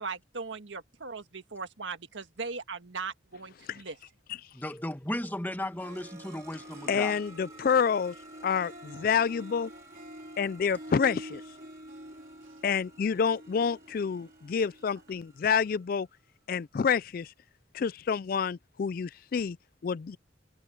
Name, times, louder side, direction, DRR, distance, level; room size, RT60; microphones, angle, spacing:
voice 1, 0.0-4.0, right 4 dB, 75° right, 1.7 m, -39 dB
voice 2, 4.5-7.2, left 1 dB, 10° left, 1.6 m, -35 dB
sound 1, 5.5-16.3, right 2 dB, 15° right, 3.2 m, -56 dB
Harp, 5.5-5.6 5.8-15.3, right 1 dB, 45° right, 2.8 m, -48 dB
voice 3, 6.9-8.1 8.4-9.7 10.4-11.4 12.6-16.1 16.5-17.3 17.7-19.6 19.8-20.2, left 6 dB, 50° left, 0.3 m, -28 dB
head